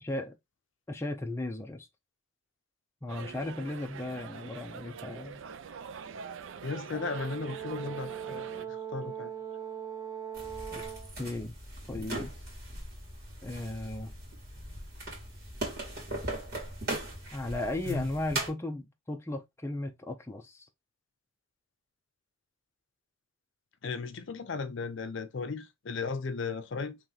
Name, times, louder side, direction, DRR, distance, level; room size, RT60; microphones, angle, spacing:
voice 1, 0.0-0.3 0.9-1.9 3.0-5.4 10.7-10.8 11.2-11.5 11.9-12.3 13.4-14.1 17.3-20.7, left 2 dB, 10° left, 0.5 m, -36 dB
sound 1, 3.1-8.7, right 6 dB, 65° right, 0.4 m, -44 dB
voice 2, 6.6-9.3 17.8-18.1 23.8-27.0, left 4 dB, 60° left, 0.5 m, -36 dB
Brass instrument, 6.9-11.1, right 8 dB, 15° right, 1.0 m, -40 dB
sound 2, 10.3-18.5, right 1 dB, 45° right, 2.1 m, -39 dB
3.1 x 3.0 x 3.8 m
head